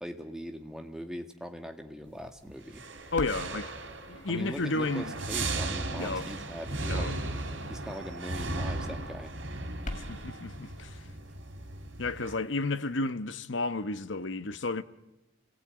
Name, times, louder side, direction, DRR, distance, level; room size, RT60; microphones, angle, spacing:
voice 1, 0.0-2.8 4.3-7.1 7.7-9.3, equal, 5° right, 1.8 m, -41 dB
sound 1, 2.6-12.3, right 2 dB, 75° right, 3.2 m, -36 dB
sound 2, 2.9-13.1, left 1 dB, 40° left, 2.1 m, -48 dB
voice 2, 3.1-3.7 4.1-5.1 6.0-6.3 6.9-7.2 9.9-11.1 12.0-14.8, left 3 dB, 70° left, 1.1 m, -32 dB
29.0 x 19.0 x 8.9 m
head